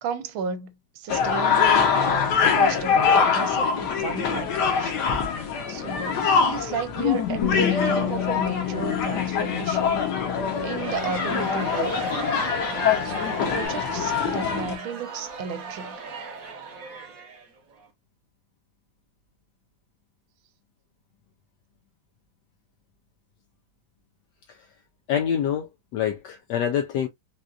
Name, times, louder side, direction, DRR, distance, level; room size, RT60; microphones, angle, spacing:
voice 1, 0.0-5.0 5.7-10.0 10.6-12.0 13.0-16.0, right 7 dB, 80° right, 1.4 m, -34 dB
sound 1, 1.1-14.7, left 6 dB, 65° left, 1.3 m, -24 dB
Bass guitar, 7.4-13.7, left 11 dB, 45° left, 1.1 m, -33 dB
Crowd, 10.6-17.8, right 4 dB, 50° right, 1.1 m, -36 dB
voice 2, 25.1-27.1, left 9 dB, 80° left, 0.9 m, -26 dB
4.1 x 2.4 x 2.3 m
omnidirectional pair, 2.3 m